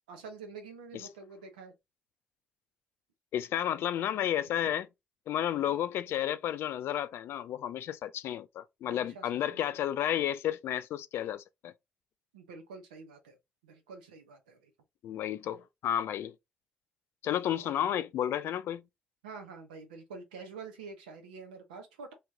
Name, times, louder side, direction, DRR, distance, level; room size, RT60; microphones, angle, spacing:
voice 1, 0.1-1.7 8.9-9.6 12.3-13.4 13.6-14.7 17.6-17.7 19.2-22.1, right 4 dB, 90° right, 0.8 m, -47 dB
voice 2, 3.3-4.8 5.3-11.7 15.0-16.3 17.2-18.8, left 11 dB, 70° left, 0.4 m, -32 dB
3.1 x 3.0 x 3.6 m
hypercardioid pair, 45°, 4 cm